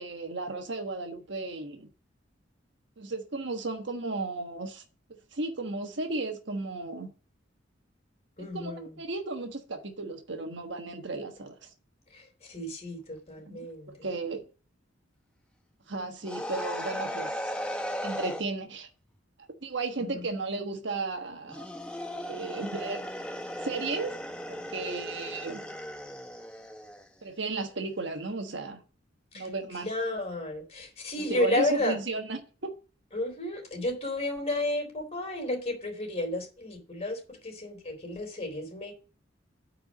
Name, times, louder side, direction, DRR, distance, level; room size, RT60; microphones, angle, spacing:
voice 1, 0.0-1.9 3.0-4.8 5.1-7.1 8.4-8.7 9.0-11.6 13.5-13.6 13.9-14.4 15.9-17.5 18.0-18.9 19.6-21.6 22.2-23.1 23.6-24.1 24.5-25.7 27.2-28.8 29.3-29.9 31.3-32.7, right 3 dB, 65° right, 1.4 m, -34 dB
voice 2, 8.4-9.0 12.1-14.1 20.0-20.3 29.3-29.5 29.8-32.0 33.1-38.9, left 1 dB, 35° left, 3.8 m, -32 dB
sound 1, 16.2-18.5 21.5-27.1, equal, 5° left, 1.3 m, -36 dB
9.1 x 4.9 x 7.3 m
head